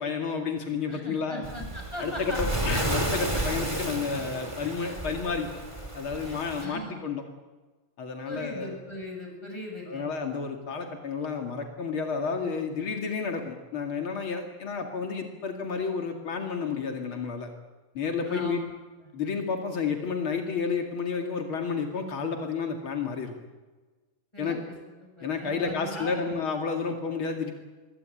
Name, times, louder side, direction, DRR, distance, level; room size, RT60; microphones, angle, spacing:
voice 1, 0.0-1.5 2.0-5.5 5.9-7.2 8.0-8.8 9.9-17.5 17.9-18.6 19.1-23.3 24.4-24.6 25.2-27.5, left 5 dB, 80° left, 3 dB, 3.1 m, -31 dB
voice 2, 0.9-2.8 3.3-3.5 4.8-4.9 6.2-6.9 8.2-10.1 18.2-18.7 24.3-26.4, left 1 dB, 10° left, 1 dB, 7.8 m, -40 dB
Waves surf, 1.4-6.7, right 1 dB, 15° right, 3.6 m, -32 dB
25.5 x 22.0 x 9.1 m, 1.3 s
omnidirectional pair, 2.3 m